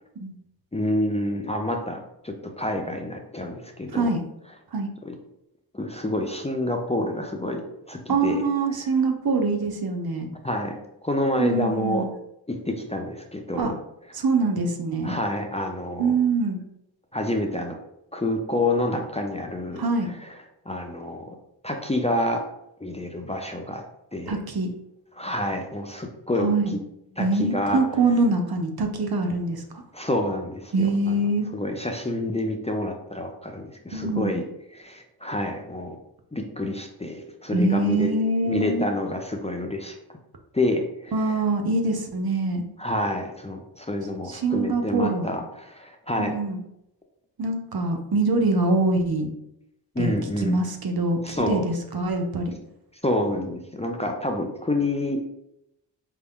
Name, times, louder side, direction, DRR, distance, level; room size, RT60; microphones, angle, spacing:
voice 1, 0.7-4.1 5.0-5.1 5.7-8.4 8.7-8.9 10.4-12.1 12.5-13.8 15.0-16.2 17.1-17.8 18.1-19.8 20.2-20.4 20.7-21.4 21.6-22.5 22.8-23.8 24.1-24.3 25.1-26.8 27.2-27.8 29.9-31.2 31.5-34.5 34.7-36.0 36.3-38.1 38.4-40.0 40.5-41.3 42.8-46.4 49.9-50.6 51.2-51.7 53.0-55.2, left 1 dB, 15° left, 2 dB, 0.5 m, -28 dB
voice 2, 8.1-10.3 11.4-12.1 13.6-13.7 14.1-15.2 16.0-16.6 19.8-20.1 24.3-24.7 26.4-26.7 27.2-29.6 30.7-31.5 33.9-34.4 37.5-38.8 41.1-42.6 44.3-45.3 46.2-46.6 47.4-49.3 50.0-50.1 50.4-52.5, right 3 dB, 55° right, 4 dB, 0.8 m, -24 dB
5.0 x 2.2 x 3.6 m, 0.82 s
cardioid pair, 45°, 44 cm